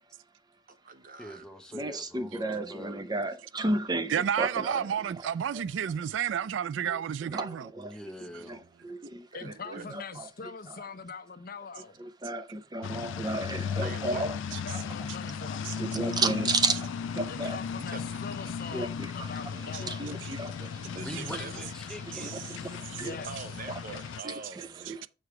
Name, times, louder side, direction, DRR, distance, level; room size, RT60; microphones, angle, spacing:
voice 1, 0.7-1.4 6.1-6.2 9.3-9.8 13.8-14.2 17.8-18.0 20.9-21.6 23.3-25.0, right 3 dB, 50° right, 0.8 m, -44 dB
voice 2, 1.2-3.0 7.8-8.7 21.0-22.7, equal, 5° left, 0.9 m, -44 dB
voice 3, 1.7-4.9 7.3-7.5 8.8-9.0 9.7-10.3 12.2-12.4 12.7-14.4 15.8-16.8 17.2-17.6 18.7-19.1 19.8-20.5 22.2-22.3 23.0-23.1 23.7-23.8 24.2-24.3, right 2 dB, 20° right, 0.6 m, -31 dB
voice 4, 4.1-7.7 15.7-15.8 19.7-19.8 20.2-20.3 22.2-22.3 24.9-25.1, right 8 dB, 85° right, 0.3 m, -31 dB
voice 5, 9.3-12.0 14.6-15.7 17.3-20.1 23.0-23.5, left 5 dB, 55° left, 0.7 m, -43 dB
sound 1, 12.8-24.2, left 7 dB, 85° left, 0.3 m, -36 dB
6.7 x 4.6 x 4.7 m
head